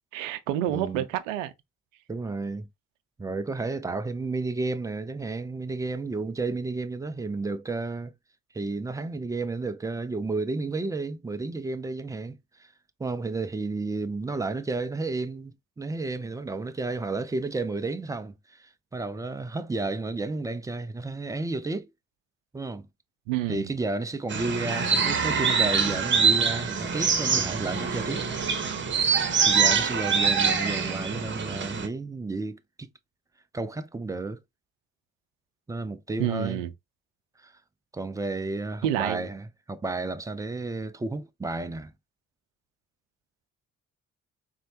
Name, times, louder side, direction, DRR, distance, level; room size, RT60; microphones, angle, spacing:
voice 1, 0.1-1.5 23.3-23.7 36.2-36.7 38.8-39.3, right 12 dB, 75° right, 0.5 m, -28 dB
voice 2, 0.7-1.1 2.1-2.7 3.2-8.1 8.5-12.7 13.0-21.9 22.5-22.9 23.5-28.3 29.4-32.9 33.5-34.4 35.7-36.6 37.4-37.5 37.9-41.9, right 3 dB, 10° right, 0.3 m, -32 dB
sound 1, 24.3-31.9, right 6 dB, 30° right, 0.8 m, -24 dB
4.1 x 2.0 x 2.8 m
figure-of-eight pair, 40°, 39 cm